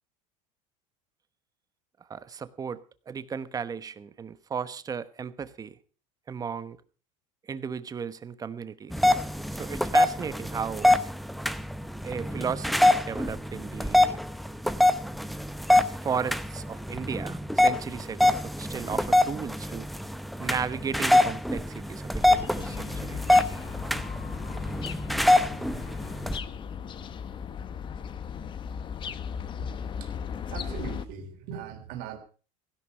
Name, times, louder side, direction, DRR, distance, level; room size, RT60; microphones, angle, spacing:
voice 1, 2.1-5.8 6.3-6.8 7.5-8.9 9.5-10.9 12.0-14.2 16.0-19.9 20.4-23.2, right 6 dB, 20° right, 14 dB, 1.0 m, -35 dB
sound 1, 8.9-26.4, left 1 dB, ahead, 0.7 m, -25 dB
sound 2, 22.2-31.1, left 7 dB, 30° left, 0.9 m, -36 dB
voice 2, 30.4-32.2, right 8 dB, 60° right, 5 dB, 3.4 m, -40 dB
16.0 x 11.5 x 5.5 m, 0.38 s
supercardioid pair, 135°, 17 cm